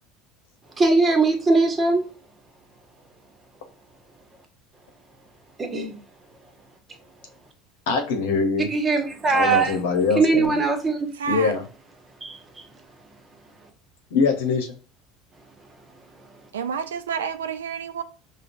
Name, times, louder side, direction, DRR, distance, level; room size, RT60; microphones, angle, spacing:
voice 1, 0.8-2.1 5.6-6.0 8.7-9.8 10.2-11.1 12.2-12.4, right 3 dB, 25° right, 1.0 m, -20 dB
voice 2, 7.9-8.7 9.3-10.6 11.3-11.6 14.1-14.8, left 4 dB, 75° left, 0.9 m, -23 dB
voice 3, 11.2-11.5 16.5-18.0, right 6 dB, 85° right, 0.4 m, -29 dB
5.1 x 2.2 x 2.6 m
hypercardioid pair, 80°, 0 cm